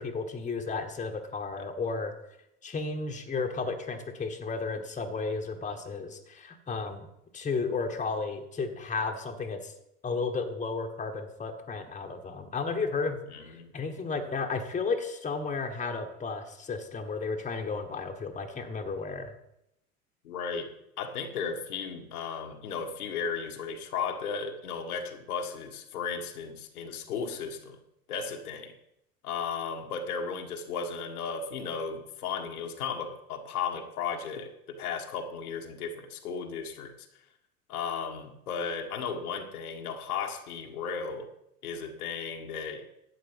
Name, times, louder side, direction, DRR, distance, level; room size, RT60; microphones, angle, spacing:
voice 1, 0.0-2.1 2.6-7.1 7.3-9.7 10.0-13.2 13.5-19.3, left 4 dB, 15° left, 4 dB, 1.4 m, -33 dB
voice 2, 13.3-13.7 20.2-27.8 28.1-28.7 29.2-36.9 37.7-41.3 41.6-43.0, left 6 dB, 70° left, 3 dB, 1.6 m, -35 dB
11.5 x 8.5 x 5.6 m, 0.80 s
figure-of-eight pair, 80°, 46 cm